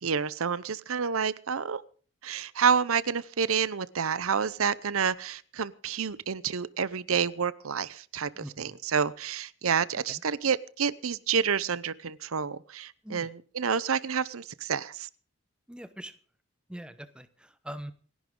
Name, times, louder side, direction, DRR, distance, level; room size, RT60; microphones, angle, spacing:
voice 1, 0.0-1.8 2.2-13.3 13.6-15.1, right 6 dB, 80° right, 18 dB, 0.7 m, -29 dB
voice 2, 8.3-8.8 10.1-10.2 13.0-13.3 15.7-16.1 16.7-17.9, equal, 5° right, 11 dB, 0.9 m, -43 dB
28.0 x 11.0 x 3.8 m, 0.43 s
head